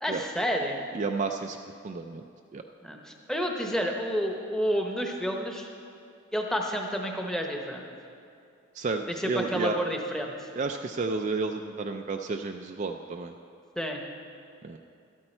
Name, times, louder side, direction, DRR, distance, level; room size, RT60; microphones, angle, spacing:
voice 1, 0.0-0.8 2.8-5.7 6.3-7.8 9.1-10.5 13.8-14.0, equal, 5° left, 1 dB, 0.9 m, -30 dB
voice 2, 0.9-1.6 1.8-2.2 2.5-2.6 8.7-9.8 10.5-13.3 14.6-14.8, right 4 dB, 35° right, 5 dB, 0.3 m, -31 dB
12.0 x 12.0 x 4.4 m, 2.4 s
head